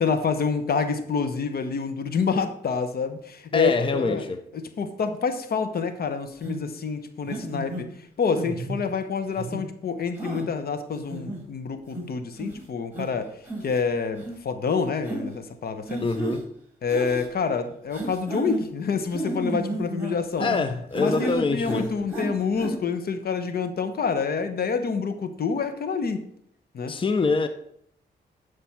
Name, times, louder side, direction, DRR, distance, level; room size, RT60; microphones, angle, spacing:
voice 1, 0.0-4.2 4.5-7.9 8.2-13.3 13.6-16.2 16.8-20.5 21.0-26.2 26.7-26.9, left 5 dB, 60° left, 1.0 m, -27 dB
voice 2, 3.5-4.4 16.0-16.4 20.4-21.9 26.9-27.5, left 4 dB, 30° left, 0.7 m, -25 dB
sound 1, 6.4-6.6 7.3-7.8 8.3-8.8 9.4-9.6 10.2-10.4 10.9-11.4 11.9-12.0 12.4-12.6 12.9-13.1 13.5-13.8 14.2-14.3 15.1-15.2 15.9-16.4 16.9-17.3 17.9-18.6 19.1-20.6 20.9-21.4 21.6-22.3 22.6-22.7, right 1 dB, 10° right, 4.3 m, -32 dB
11.5 x 5.1 x 4.6 m
cardioid pair, 70°, 18 cm